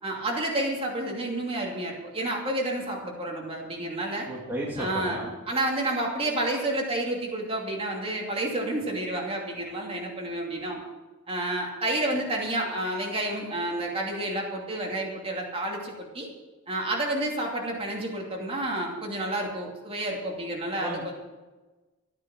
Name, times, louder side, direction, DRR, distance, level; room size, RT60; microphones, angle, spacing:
voice 1, 0.0-4.3 4.8-10.8 11.3-16.3 16.7-21.1, right 1 dB, 30° right, -1 dB, 2.7 m, -30 dB
voice 2, 4.3-5.3 20.8-21.1, right 1 dB, 10° right, -5 dB, 2.3 m, -33 dB
13.5 x 9.6 x 7.4 m, 1.2 s
head